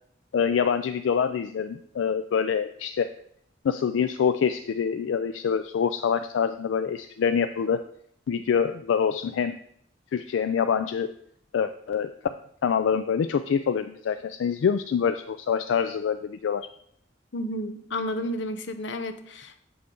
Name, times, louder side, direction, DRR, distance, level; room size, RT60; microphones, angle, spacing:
voice 1, 0.3-3.1 3.6-7.8 8.3-9.6 10.1-11.1 11.5-12.1 12.6-16.7, left 7 dB, 85° left, 10 dB, 0.3 m, -25 dB
voice 2, 17.3-19.6, left 1 dB, 70° left, 9 dB, 0.7 m, -32 dB
7.7 x 5.8 x 3.7 m, 0.68 s
head